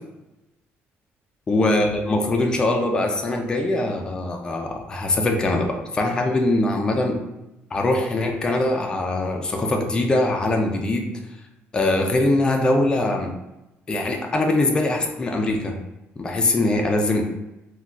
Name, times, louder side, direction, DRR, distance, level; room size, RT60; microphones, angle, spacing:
voice 1, 1.5-7.2 7.7-11.1 11.7-13.3 13.9-15.8 16.2-17.2, left 2 dB, 20° left, 2 dB, 0.3 m, -22 dB
3.8 x 2.2 x 2.3 m, 0.94 s
cardioid pair, 170°, 5 cm